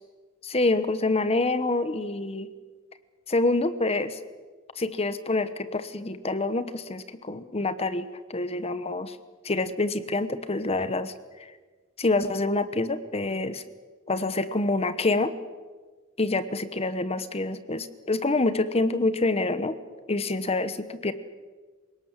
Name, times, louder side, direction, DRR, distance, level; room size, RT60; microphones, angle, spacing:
voice 1, 0.4-2.5 3.3-4.2 4.8-9.2 9.4-11.1 12.0-13.6 14.1-15.3 16.2-19.7 20.1-20.7 21.0-21.1, left 2 dB, 30° left, 12 dB, 1.1 m, -26 dB
27.5 x 18.0 x 7.5 m, 1.4 s
head